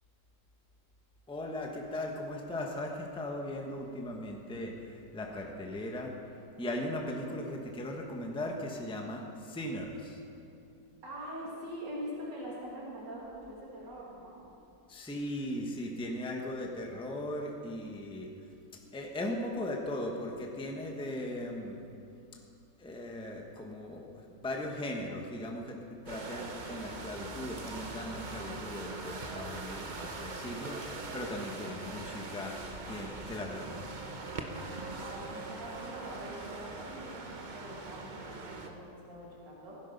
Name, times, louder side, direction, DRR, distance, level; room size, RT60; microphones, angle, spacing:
voice 1, 1.3-6.1 6.6-10.2 14.9-18.3 18.9-21.8 22.8-33.9, left 1 dB, 5° left, 1 dB, 1.0 m, -38 dB
voice 2, 11.0-14.4 31.4-31.7 35.0-39.8, equal, 75° right, -5 dB, 3.1 m, -44 dB
sound 1, 26.1-38.7, right 3 dB, 35° right, 0.7 m, -42 dB
16.5 x 10.0 x 5.3 m, 2.6 s
omnidirectional pair, 1.9 m